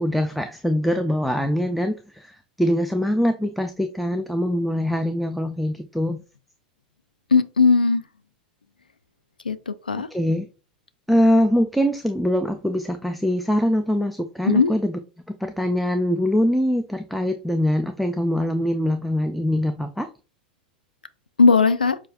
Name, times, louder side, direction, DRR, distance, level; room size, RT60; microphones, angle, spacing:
voice 1, 0.0-6.2 10.1-10.5 11.1-15.0 15.4-20.1, equal, ahead, 0.4 m, -23 dB
voice 2, 7.3-8.0 9.5-10.1 14.5-14.7 21.4-22.0, left 4 dB, 85° left, 0.4 m, -18 dB
6.5 x 2.4 x 2.5 m
figure-of-eight pair, 90°, 5 cm